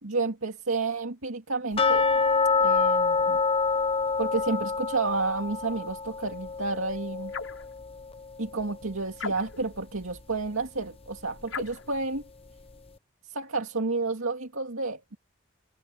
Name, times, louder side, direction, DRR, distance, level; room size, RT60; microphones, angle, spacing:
voice 1, 0.0-2.1 2.6-3.4 4.2-7.3 8.4-12.2 13.2-15.2, right 3 dB, 90° right, 2.3 m, -30 dB
sound 1, 1.8-8.6 8.9-9.0 9.5-9.6 10.2-10.3, left 4 dB, 25° left, 0.8 m, -26 dB
sound 2, 7.3-7.7 9.2-9.7 11.5-11.9, left 4 dB, 80° left, 6.8 m, -37 dB
head